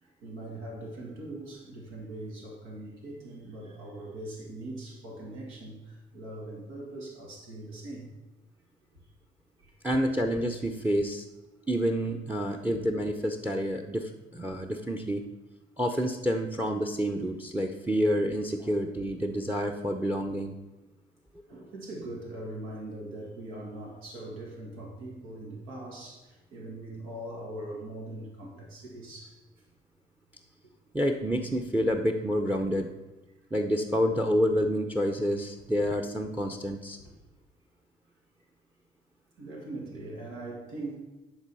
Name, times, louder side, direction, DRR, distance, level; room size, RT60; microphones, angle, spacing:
voice 1, 0.0-8.1 9.6-9.7 18.6-18.7 21.5-29.4 37.0-37.1 39.4-41.0, right 1 dB, 90° right, -1 dB, 2.0 m, -41 dB
voice 2, 9.8-11.2 11.7-15.2 15.8-20.6 30.9-32.9 33.5-37.0, equal, 10° right, 6 dB, 0.6 m, -28 dB
10.0 x 3.9 x 5.4 m, 1.1 s
cardioid pair, 90°, 20 cm